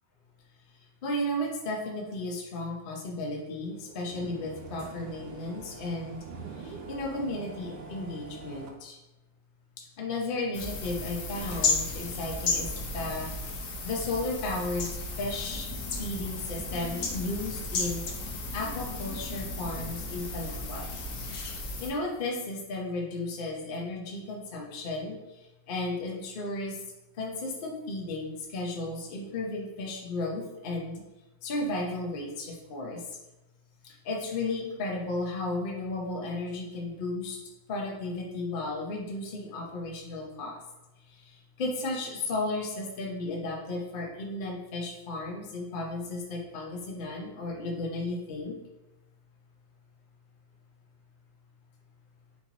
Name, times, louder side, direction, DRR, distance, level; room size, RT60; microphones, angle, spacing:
voice 1, 1.0-6.2 6.6-9.0 10.0-13.3 13.8-14.9 15.2-15.7 16.0-21.0 21.8-26.8 27.2-31.0 31.4-33.0 33.8-37.4 37.7-40.6 41.1-48.6, left 2 dB, 85° left, 0 dB, 0.4 m, -34 dB
sound 1, 3.7-8.7, right 4 dB, 70° right, 1.2 m, -44 dB
sound 2, 10.5-21.9, left 3 dB, 60° left, 0.9 m, -34 dB
4.3 x 3.0 x 3.9 m, 1.0 s
omnidirectional pair, 2.0 m